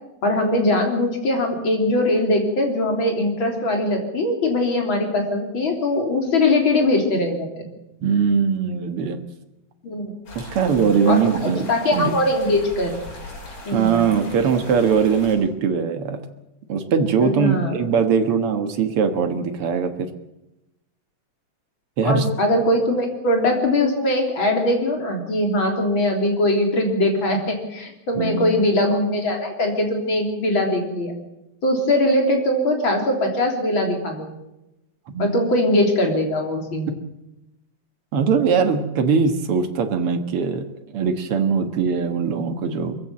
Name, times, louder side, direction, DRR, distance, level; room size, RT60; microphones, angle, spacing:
voice 1, 0.2-7.7 9.8-10.1 11.1-13.0 13.6-14.0 17.2-17.8 22.0-31.2 31.6-34.4 35.2-37.0, left 1 dB, 35° left, 3 dB, 3.9 m, -21 dB
voice 2, 8.0-9.2 10.4-12.1 13.7-16.2 16.7-20.1 22.0-22.3 28.2-28.5 35.1-35.5 38.1-40.7 40.9-43.0, right 6 dB, 55° right, 7 dB, 1.8 m, -21 dB
sound 1, 10.3-15.4, left 2 dB, 80° left, 8.2 m, -39 dB
23.0 x 15.0 x 7.5 m, 0.92 s
omnidirectional pair, 4.1 m